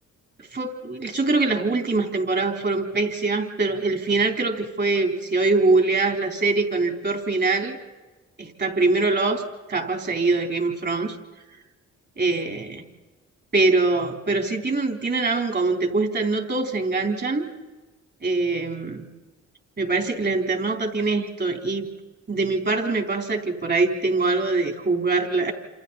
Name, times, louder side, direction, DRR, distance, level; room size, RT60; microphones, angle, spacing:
voice 1, 0.5-7.8 8.4-9.4 9.7-11.2 12.2-12.8 13.5-17.4 18.2-19.1 19.8-21.9 22.3-25.5, right 3 dB, 35° right, 3 dB, 4.1 m, -23 dB
29.0 x 27.5 x 4.3 m, 1.2 s
cardioid pair, 90°, 30 cm